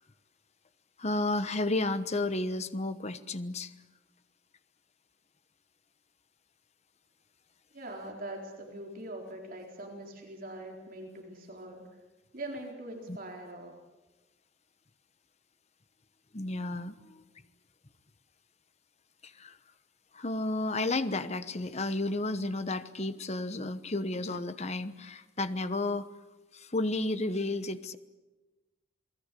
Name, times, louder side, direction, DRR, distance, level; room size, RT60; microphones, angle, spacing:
voice 1, 1.0-3.7 13.1-13.2 16.3-17.2 19.2-19.6 20.1-26.1 26.5-28.0, left 2 dB, 35° left, 11 dB, 1.1 m, -32 dB
voice 2, 7.7-11.8 12.3-13.8, right 1 dB, 45° right, 1 dB, 4.1 m, -42 dB
28.5 x 19.5 x 8.5 m, 1.2 s
head